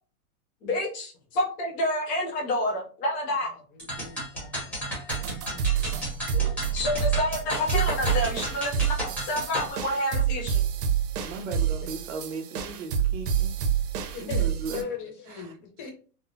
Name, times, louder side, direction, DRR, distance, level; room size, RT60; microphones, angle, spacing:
voice 1, 0.6-3.6 6.7-10.6, left 1 dB, 20° left, 0 dB, 0.6 m, -29 dB
sound 1, 3.8-9.7, equal, 5° left, 1.0 m, -33 dB
voice 2, 4.0-5.7 6.3-6.5 14.1-15.9, left 7 dB, 35° left, 2 dB, 0.9 m, -39 dB
sound 2, 5.1-14.8, right 8 dB, 85° right, 0.8 m, -28 dB
voice 3, 11.2-13.5 14.2-14.8 15.3-15.6, right 4 dB, 55° right, 4 dB, 0.8 m, -37 dB
3.5 x 2.1 x 2.7 m, 0.39 s
supercardioid pair, 155°, 45 cm